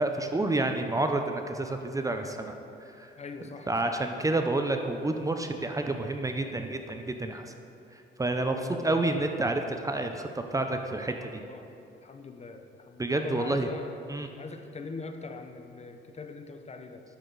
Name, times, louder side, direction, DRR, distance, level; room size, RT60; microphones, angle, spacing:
voice 1, 0.0-2.5 3.0-3.1 3.7-7.5 8.2-11.4 13.0-13.7 14.1-14.3, right 2 dB, 15° right, 5 dB, 0.6 m, -29 dB
voice 2, 3.2-3.9 8.4-9.0 11.5-11.7 12.0-17.0, left 4 dB, 35° left, 6 dB, 0.7 m, -42 dB
9.9 x 6.6 x 4.0 m, 2.6 s
cardioid pair, 90°, 20 cm